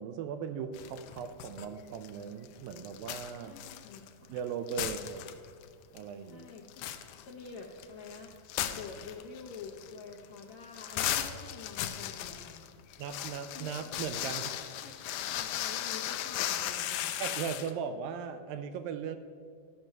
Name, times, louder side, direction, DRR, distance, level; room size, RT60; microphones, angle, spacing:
voice 1, 0.0-3.6 4.3-5.2 5.9-6.5 13.0-14.4 17.2-19.2, right 7 dB, 80° right, 10 dB, 2.2 m, -38 dB
sound 1, 0.7-1.7 1.9-4.4 4.7-5.6 6.0-6.1 6.5-17.7, left 11 dB, 90° left, 1.8 m, -37 dB
voice 2, 3.4-4.1 4.7-4.9 6.2-6.9 7.3-8.3 8.7-12.6 13.5-13.7 14.2-14.4 14.7-15.0 15.2-17.1, left 5 dB, 70° left, -1 dB, 1.7 m, -47 dB
14.0 x 6.0 x 6.5 m, 2.1 s
omnidirectional pair, 4.2 m